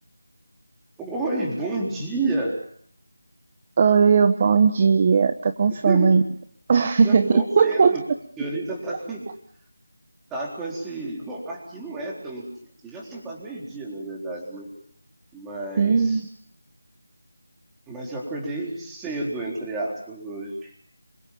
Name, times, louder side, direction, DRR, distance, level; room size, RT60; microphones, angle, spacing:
voice 1, 1.0-2.6 5.7-6.2 7.0-8.0 8.4-9.2 10.3-12.5 12.8-14.7 15.3-16.3 17.9-20.7, right 2 dB, 5° right, -2 dB, 4.0 m, -30 dB
voice 2, 3.8-6.2 6.7-8.0 15.8-16.2, right 5 dB, 25° right, 10 dB, 1.0 m, -18 dB
27.0 x 24.5 x 7.1 m, 0.62 s
figure-of-eight pair, 175°, 0 cm